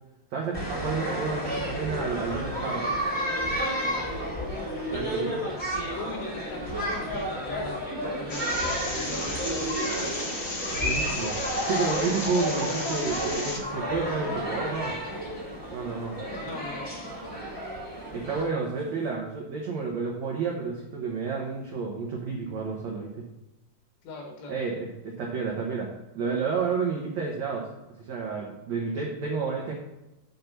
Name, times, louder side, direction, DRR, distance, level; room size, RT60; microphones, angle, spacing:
voice 1, 0.3-2.9 4.9-5.4 10.7-15.0 15.7-16.1 18.1-23.3 24.5-25.9 26.1-27.7 28.0-29.7, right 4 dB, 85° right, -1 dB, 1.5 m, -30 dB
sound 1, 0.5-18.4, equal, 5° left, 0.9 m, -31 dB
voice 2, 4.8-5.4 5.7-10.1 16.4-16.9 24.0-24.6 28.9-29.1, left 2 dB, 85° left, 1 dB, 4.0 m, -40 dB
sound 2, 7.9-19.2, right 5 dB, 70° right, 2.3 m, -48 dB
sound 3, 8.3-13.6, left 2 dB, 55° left, 1.1 m, -34 dB
8.4 x 4.5 x 6.6 m, 0.97 s
omnidirectional pair, 4.8 m